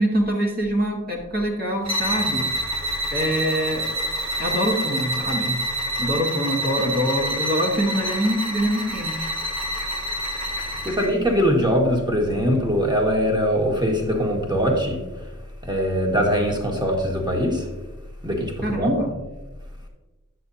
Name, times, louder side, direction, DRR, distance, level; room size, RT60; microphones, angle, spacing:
voice 1, 0.0-2.5 3.1-3.9 4.4-5.5 6.0-9.3 18.6-19.1, equal, 30° right, -5 dB, 1.5 m, -24 dB
sound 1, 1.8-11.2, right 1 dB, 55° right, 1.2 m, -27 dB
voice 2, 10.6-15.0 15.6-17.7 18.2-18.9, equal, 15° right, -1 dB, 1.7 m, -22 dB
9.8 x 6.4 x 2.7 m, 1.2 s
wide cardioid pair, 40°, 32 cm